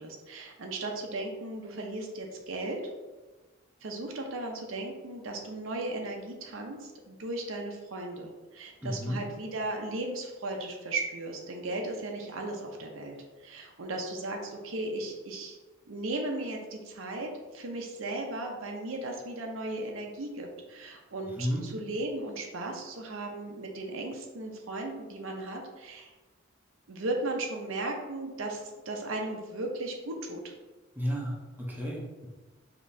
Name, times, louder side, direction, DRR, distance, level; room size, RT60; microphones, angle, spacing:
voice 1, 0.0-2.8 3.8-15.6 15.9-26.1 26.9-30.4, right 2 dB, 80° right, 1 dB, 0.7 m, -36 dB
voice 2, 8.8-9.2 21.4-21.7 31.0-32.3, equal, 10° right, -3 dB, 0.7 m, -32 dB
5.1 x 2.9 x 2.7 m, 1.2 s
head